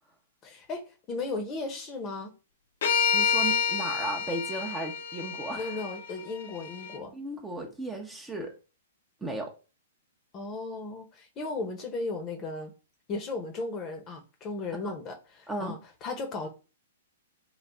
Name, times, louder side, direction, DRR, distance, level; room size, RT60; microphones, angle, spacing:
voice 1, 0.4-2.3 5.5-7.1 10.3-12.7 13.1-16.5, left 3 dB, 30° left, 1.0 m, -36 dB
sound 1, 2.8-7.0, left 6 dB, 65° left, 0.6 m, -29 dB
voice 2, 3.1-5.8 7.1-8.5 9.2-9.5 14.8-14.9 15.5-15.8, right 2 dB, 10° right, 0.9 m, -35 dB
3.9 x 2.3 x 3.6 m
hypercardioid pair, 115°, 0 cm